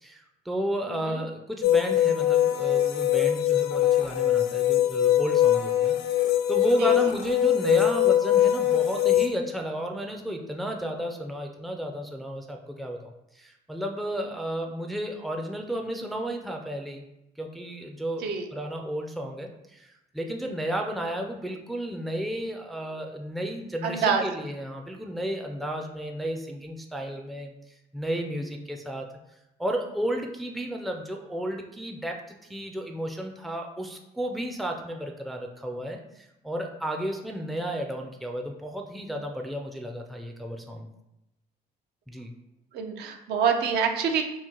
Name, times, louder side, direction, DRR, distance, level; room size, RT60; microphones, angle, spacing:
voice 1, 0.0-17.0 17.4-27.5 27.9-29.1 29.6-32.2 32.5-40.9 42.1-42.3, right 1 dB, ahead, 2 dB, 0.3 m, -32 dB
voice 2, 0.9-1.2 6.8-6.9 18.2-18.4 23.8-24.2 42.7-44.2, right 6 dB, 75° right, 4 dB, 0.5 m, -26 dB
sound 1, 1.6-9.3, left 12 dB, 75° left, 0.4 m, -22 dB
3.0 x 2.4 x 3.6 m, 0.89 s
cardioid pair, 110°, 17 cm